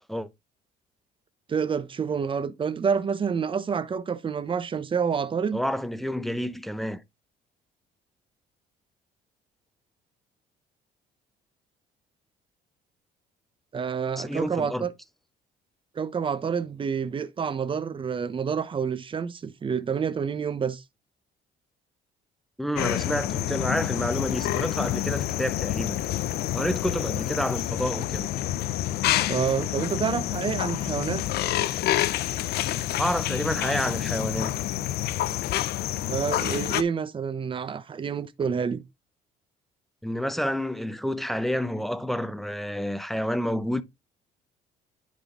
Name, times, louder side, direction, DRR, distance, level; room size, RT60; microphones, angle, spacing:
voice 1, 1.5-5.6 13.7-14.9 15.9-20.8 29.3-31.2 36.1-38.8, right 6 dB, 30° right, 0.9 m, -28 dB
voice 2, 5.5-7.0 14.2-14.9 22.6-26.0 26.5-28.3 33.0-34.5 40.0-43.8, equal, ahead, 0.8 m, -29 dB
sound 1, 22.8-36.8, left 13 dB, 70° left, 0.6 m, -28 dB
10.5 x 3.9 x 3.7 m
cardioid pair, 110°, 17 cm